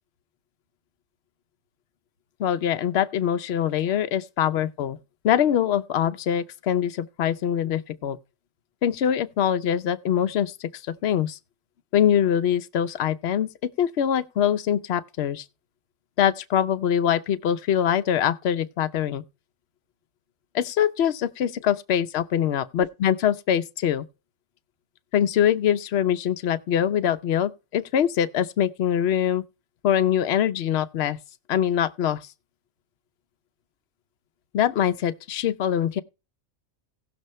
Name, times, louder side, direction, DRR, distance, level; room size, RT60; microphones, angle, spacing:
voice 1, 2.4-5.0 5.2-8.2 8.8-10.7 11.0-11.4 11.9-15.4 16.2-19.2 20.5-24.0 25.1-29.4 29.8-31.2 31.5-32.2 34.5-36.0, left 9 dB, 60° left, 0.9 m, -23 dB
17.0 x 6.6 x 3.1 m
omnidirectional pair, 1.4 m